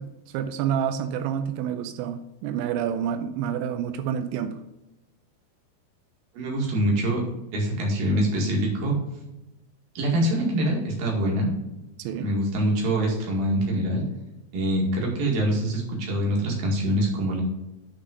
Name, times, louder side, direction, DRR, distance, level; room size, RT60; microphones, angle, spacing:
voice 1, 0.0-4.6 12.0-12.3, right 8 dB, 90° right, 8 dB, 3.0 m, -28 dB
voice 2, 6.4-7.2 7.5-9.0 10.0-11.6 12.2-14.1 14.5-17.4, right 1 dB, 55° right, -1 dB, 3.4 m, -24 dB
9.7 x 4.2 x 5.3 m, 0.97 s
omnidirectional pair, 5.1 m